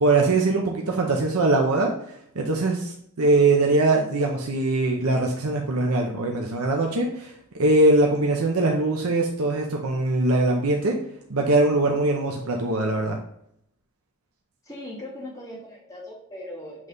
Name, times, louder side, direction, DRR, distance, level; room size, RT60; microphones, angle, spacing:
voice 1, 0.0-11.0 11.3-13.2, right 2 dB, 80° right, 1 dB, 0.8 m, -22 dB
voice 2, 14.7-16.9, left 1 dB, 15° left, -5 dB, 1.8 m, -39 dB
7.3 x 3.2 x 4.0 m, 0.71 s
head